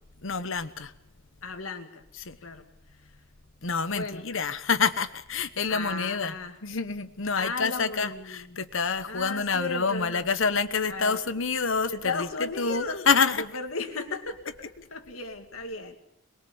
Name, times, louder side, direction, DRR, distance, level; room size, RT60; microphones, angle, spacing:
voice 1, 0.2-0.9 2.2-2.4 3.6-6.3 6.6-13.4, left 5 dB, 65° left, 1.2 m, -27 dB
voice 2, 1.4-2.0 2.4-2.6 3.9-4.2 5.7-6.6 7.4-8.6 9.1-10.2 10.9-11.2 11.9-13.1 13.4-16.0, left 3 dB, 90° left, 2.4 m, -35 dB
22.0 x 22.0 x 7.1 m
head